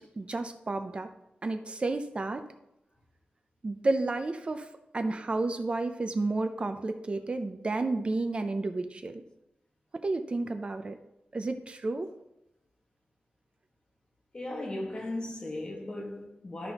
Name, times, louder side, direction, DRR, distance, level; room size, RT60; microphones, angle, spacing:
voice 1, 0.2-1.1 1.4-2.4 3.6-4.7 4.9-9.2 9.9-11.0 11.3-12.1, right 2 dB, 35° right, 0.5 m, -31 dB
voice 2, 14.3-16.7, left 1 dB, 30° left, 1.5 m, -37 dB
12.5 x 6.0 x 2.9 m
wide cardioid pair, 135°, 3 cm